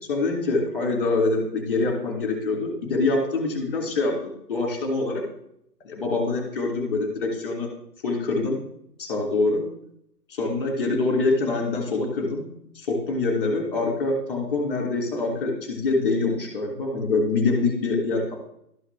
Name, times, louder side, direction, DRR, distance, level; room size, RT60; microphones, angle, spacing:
voice 1, 0.1-5.2 5.8-7.7 8.0-8.6 9.0-9.6 10.3-12.4 12.7-18.3, left 3 dB, 15° left, 1 dB, 2.2 m, -25 dB
12.5 x 4.8 x 3.3 m, 0.72 s
figure-of-eight pair, 155°, 50 cm